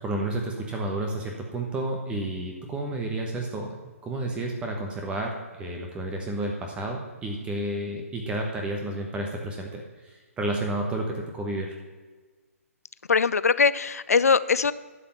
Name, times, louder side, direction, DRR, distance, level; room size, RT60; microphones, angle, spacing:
voice 1, 0.0-3.8 4.0-11.7, right 1 dB, 15° right, 1 dB, 1.2 m, -31 dB
voice 2, 13.1-14.7, left 5 dB, 85° left, 17 dB, 0.5 m, -21 dB
11.0 x 5.7 x 7.0 m, 1.3 s
hypercardioid pair, 140°, 8 cm